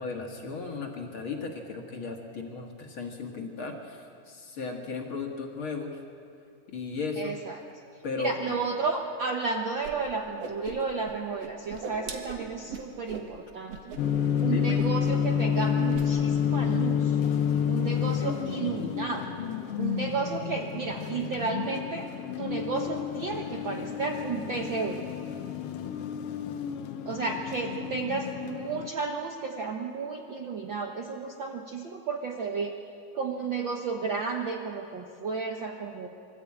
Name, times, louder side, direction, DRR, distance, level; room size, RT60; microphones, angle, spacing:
voice 1, 0.0-6.0 6.7-7.4 8.0-8.6 14.5-14.9, left 4 dB, 45° left, 2 dB, 2.1 m, -35 dB
voice 2, 7.2-7.6 8.2-14.0 14.4-17.1 17.7-19.3 19.8-22.1 22.4-25.0 27.0-32.7 33.1-36.1, right 4 dB, 90° right, 2 dB, 1.0 m, -32 dB
Whoosh swoosh swish, 9.8-9.9 10.2-11.1 11.4-13.3 13.7-14.0 14.2-14.4 14.8-15.3 15.5-16.1, right 5 dB, 55° right, 2.2 m, -39 dB
sound 1, 14.0-28.9, left 8 dB, 85° left, 1.3 m, -29 dB
25.5 x 13.5 x 8.6 m, 2.6 s
omnidirectional pair, 3.8 m